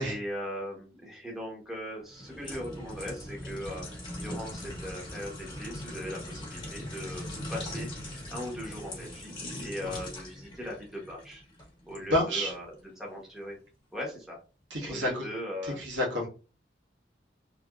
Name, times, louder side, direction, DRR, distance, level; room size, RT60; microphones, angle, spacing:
voice 1, 0.0-11.4 11.9-13.6 13.9-14.4 14.8-15.8, left 1 dB, ahead, -2 dB, 0.9 m, -39 dB
sound 1, 2.1-12.0 12.5-12.7, left 1 dB, 25° left, 1.2 m, -40 dB
voice 2, 12.1-12.5 14.7-15.3 15.6-16.3, left 1 dB, 80° right, -2 dB, 1.3 m, -29 dB
3.0 x 2.8 x 2.3 m, 0.34 s
head